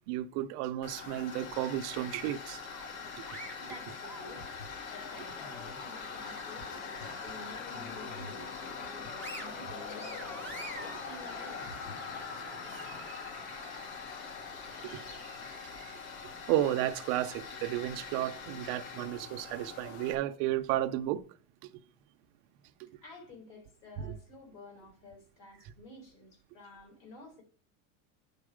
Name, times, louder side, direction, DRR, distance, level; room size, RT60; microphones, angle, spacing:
voice 1, 0.1-2.6 12.6-13.9 14.8-16.0 16.5-21.2 22.8-22.9 24.0-24.2, right 13 dB, 40° right, 0.5 m, -34 dB
Tools, 0.8-20.1, left 5 dB, 90° left, 2.1 m, -43 dB
sound 1, 2.7-4.7 5.2-6.6 7.0-7.2 7.6-8.4 8.8-12.3, equal, 5° left, 0.6 m, -48 dB
voice 2, 3.6-4.4 4.9-11.8 23.0-27.4, left 2 dB, 45° left, 4.0 m, -51 dB
10.0 x 4.0 x 4.9 m
supercardioid pair, 170°, 41 cm